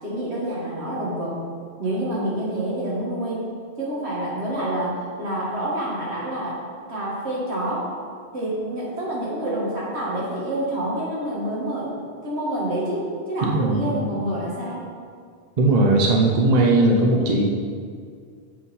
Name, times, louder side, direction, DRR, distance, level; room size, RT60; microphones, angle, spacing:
voice 1, 0.0-1.4 1.8-3.4 3.8-6.6 6.9-7.9 8.3-11.9 12.2-14.9, right 1 dB, 80° right, -6 dB, 1.8 m, -27 dB
voice 2, 13.4-13.9 15.6-17.5, right 2 dB, 45° right, 0 dB, 0.7 m, -18 dB
7.3 x 3.8 x 4.1 m, 2.1 s
omnidirectional pair, 1.1 m